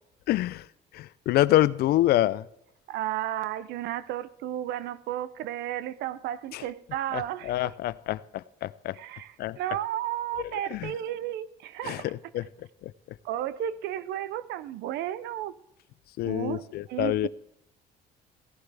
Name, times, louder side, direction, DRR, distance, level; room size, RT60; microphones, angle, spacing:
voice 1, 0.3-0.6 0.9-2.4 6.5-6.6 7.1-9.0 9.4-9.6 10.7-10.9 11.8-12.0 12.3-12.5 12.8-12.9 16.2-17.3, left 14 dB, 65° left, 19 dB, 0.5 m, -26 dB
voice 2, 2.9-7.7 8.9-12.0 13.2-15.5 16.2-17.3, right 12 dB, 80° right, 16 dB, 0.6 m, -33 dB
16.5 x 11.5 x 3.4 m, 0.82 s
cardioid pair, 110°, 17 cm